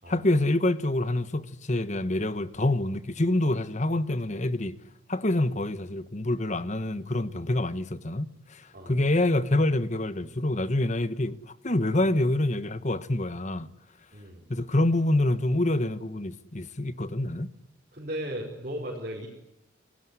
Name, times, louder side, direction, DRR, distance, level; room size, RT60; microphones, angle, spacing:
voice 1, 0.1-4.7 5.1-11.4 11.6-13.7 14.5-17.5, left 1 dB, 40° left, 1.3 m, -26 dB
voice 2, 14.1-14.4 17.9-19.3, right 1 dB, 45° right, 5.2 m, -36 dB
28.0 x 18.0 x 9.7 m
head